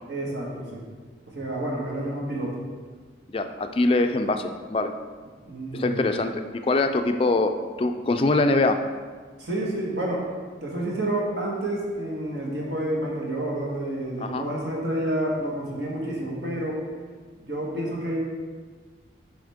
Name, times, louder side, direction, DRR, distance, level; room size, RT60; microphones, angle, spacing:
voice 1, 0.1-0.8 1.3-2.6 5.5-6.1 9.4-10.3 10.6-16.8 17.4-18.2, right 1 dB, 70° right, -3 dB, 1.6 m, -29 dB
voice 2, 3.3-4.9 5.7-8.8 14.2-14.5, left 2 dB, 30° left, 7 dB, 0.3 m, -23 dB
7.2 x 5.1 x 3.5 m, 1.5 s
head